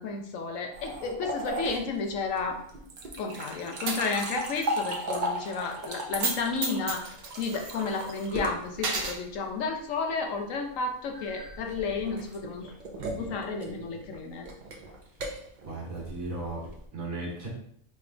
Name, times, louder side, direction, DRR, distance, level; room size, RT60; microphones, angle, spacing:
voice 1, 0.0-2.6 3.2-7.0 7.4-12.7 13.2-14.5, left 4 dB, 70° left, 4 dB, 1.0 m, -32 dB
sound 1, 0.7-9.4 11.1-16.9, right 1 dB, 45° right, 0.6 m, -37 dB
Coin (dropping), 3.9-4.7 5.0-5.1 6.1-6.4 6.6-8.2 8.7-9.2, right 4 dB, 90° right, 1.3 m, -32 dB
voice 2, 15.6-17.5, right 2 dB, 70° right, -3 dB, 1.7 m, -36 dB
5.1 x 3.3 x 2.4 m, 0.66 s
omnidirectional pair, 1.5 m